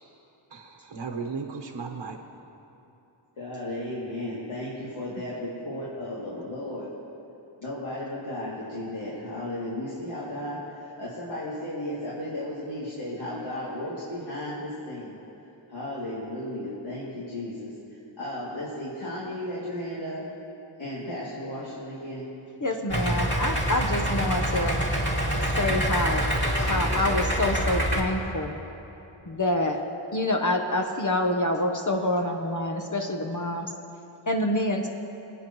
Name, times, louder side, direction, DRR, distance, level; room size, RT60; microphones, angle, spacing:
voice 1, 0.5-2.4 6.4-6.5, right 4 dB, 55° right, 3 dB, 1.1 m, -36 dB
voice 2, 3.4-6.9 7.6-15.2 15.7-17.7 18.2-20.2 20.8-22.3, left 1 dB, 75° left, -9 dB, 2.7 m, -34 dB
voice 3, 22.6-24.9 25.6-26.3 26.6-28.6 29.3-29.8 30.1-33.7 34.3-34.9, left 1 dB, 40° left, 3 dB, 0.9 m, -27 dB
Idling, 22.9-28.0, equal, 25° left, 2.4 m, -26 dB
23.5 x 9.0 x 3.1 m, 3.0 s
cardioid pair, 50°, 48 cm